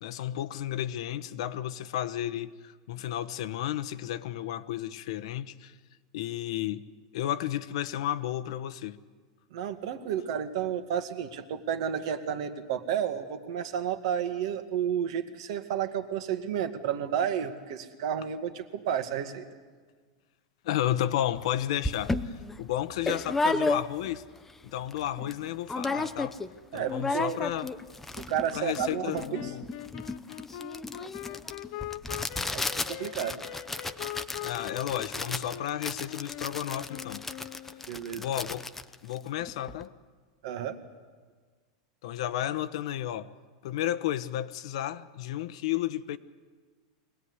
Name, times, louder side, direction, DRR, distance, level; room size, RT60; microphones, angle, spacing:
voice 1, 0.0-2.5 2.9-5.7 6.1-6.8 7.1-9.0 20.6-22.1 22.6-24.2 24.6-26.3 26.7-27.7 28.5-29.6 34.4-37.2 38.2-38.6 39.0-39.9 42.0-43.3 43.6-46.2, left 12 dB, 65° left, 13 dB, 1.1 m, -32 dB
voice 2, 9.5-19.4 26.7-27.4 28.2-29.5 32.5-33.4 37.9-38.2 40.4-40.8, right 9 dB, 65° right, 8 dB, 2.0 m, -31 dB
sound 1, 21.4-21.5 21.8-24.2 24.6-24.7 24.9-25.4 25.7-26.5 26.8-39.8, left 2 dB, 5° left, 0.8 m, -33 dB
sound 2, 28.7-37.9, left 13 dB, 50° left, 0.8 m, -42 dB
24.0 x 18.5 x 9.7 m, 1.5 s
supercardioid pair, 150°, 3 cm